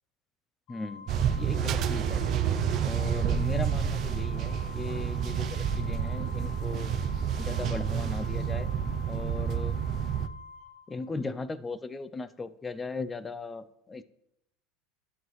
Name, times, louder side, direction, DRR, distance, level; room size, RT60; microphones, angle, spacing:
Organ, 0.7-11.4, left 4 dB, 50° left, 0.7 m, -47 dB
voice 1, 0.7-1.1 1.4-2.2 2.8-6.9 7.4-8.7 9.1-9.7 10.9-14.0, left 3 dB, 15° left, 14 dB, 0.4 m, -38 dB
sound 1, 1.1-10.3, right 8 dB, 40° right, 0.5 m, -29 dB
12.0 x 7.8 x 3.1 m, 0.82 s
supercardioid pair, 145°, 0 cm